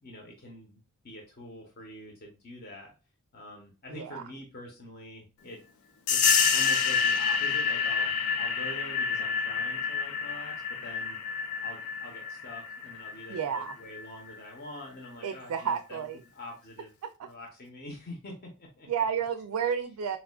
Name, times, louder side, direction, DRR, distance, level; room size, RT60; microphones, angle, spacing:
voice 1, 0.0-0.8 1.0-2.9 3.3-5.6 6.1-11.2 11.6-16.0 16.3-16.9 17.2-18.9, left 1 dB, 45° left, 0 dB, 0.8 m, -45 dB
voice 2, 3.9-4.2 13.3-13.7 15.2-16.2 18.9-20.2, right 7 dB, 90° right, 7 dB, 0.4 m, -31 dB
sound 1, 6.1-14.4, left 6 dB, 75° left, 0.5 m, -28 dB
4.2 x 2.3 x 2.3 m, 0.32 s
head